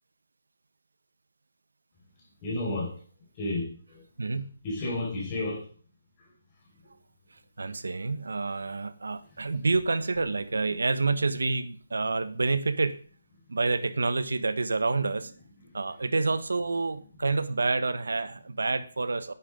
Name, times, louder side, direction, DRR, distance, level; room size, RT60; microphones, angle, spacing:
voice 1, 2.4-3.0 3.3-4.0 4.6-5.7, left 2 dB, 20° left, -3 dB, 5.2 m, -31 dB
voice 2, 4.2-4.5 7.6-13.0 13.5-15.3 15.7-19.3, right 3 dB, 90° right, 13 dB, 1.2 m, -28 dB
11.5 x 10.5 x 3.9 m, 0.41 s
hypercardioid pair, 170°, 0 cm